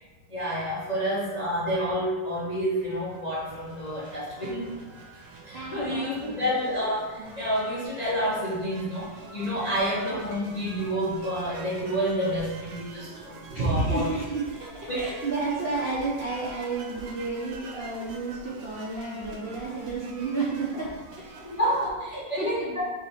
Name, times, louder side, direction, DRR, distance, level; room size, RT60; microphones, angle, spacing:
voice 1, 0.3-4.7 5.1-14.1 14.9-15.0 21.4-22.8, equal, 60° left, -8 dB, 0.4 m, -29 dB
sound 1, 2.5-21.9, right 3 dB, 85° right, 1.3 m, -46 dB
voice 2, 5.5-6.5 13.5-14.4 14.9-20.9 21.3-21.5 22.1-22.7, right 3 dB, 65° right, -6 dB, 0.5 m, -31 dB
3.8 x 3.1 x 4.1 m, 1.2 s
omnidirectional pair, 1.9 m